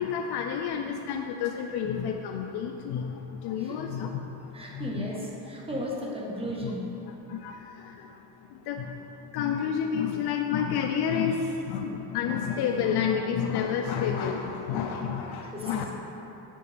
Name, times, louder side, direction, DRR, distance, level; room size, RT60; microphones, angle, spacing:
voice 1, 0.0-4.2 4.7-5.1 6.6-6.7 7.3-8.1 8.5-8.8 9.3-15.8, left 7 dB, 70° left, 4 dB, 0.5 m, -30 dB
voice 2, 4.5-6.9 15.1-16.0, equal, 15° right, -3 dB, 1.2 m, -35 dB
7.7 x 6.8 x 3.3 m, 2.9 s
cardioid pair, 120°, 41 cm